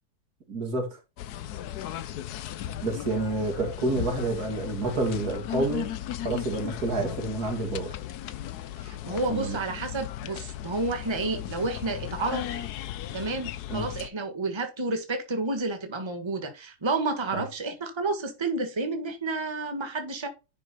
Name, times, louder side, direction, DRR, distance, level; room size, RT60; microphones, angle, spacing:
voice 1, 0.5-1.0 2.7-5.9 6.2-8.0 9.3-9.6 13.7-13.9 17.3-17.4, right 2 dB, 75° right, 3.0 m, -29 dB
sound 1, 1.2-14.1, left 12 dB, 85° left, 1.2 m, -36 dB
voice 2, 8.8-12.6 13.1-20.3, right 3 dB, 20° right, 1.5 m, -30 dB
10.5 x 4.7 x 4.2 m
omnidirectional pair, 1.6 m